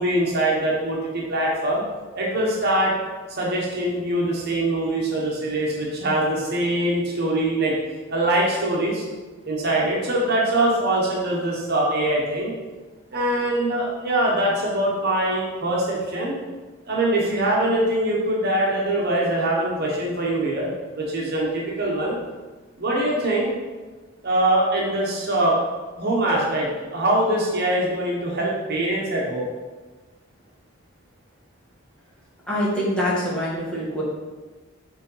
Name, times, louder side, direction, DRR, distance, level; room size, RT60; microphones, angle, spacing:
voice 1, 0.0-1.8 2.1-3.0 3.4-7.7 8.1-9.0 9.4-12.5 13.1-16.3 16.9-20.7 20.9-22.1 22.8-23.5 24.2-25.6 26.0-29.4, right 1 dB, 55° right, -3 dB, 1.2 m, -23 dB
voice 2, 32.5-34.0, equal, 5° left, -9 dB, 2.1 m, -24 dB
5.2 x 4.0 x 5.5 m, 1.3 s
head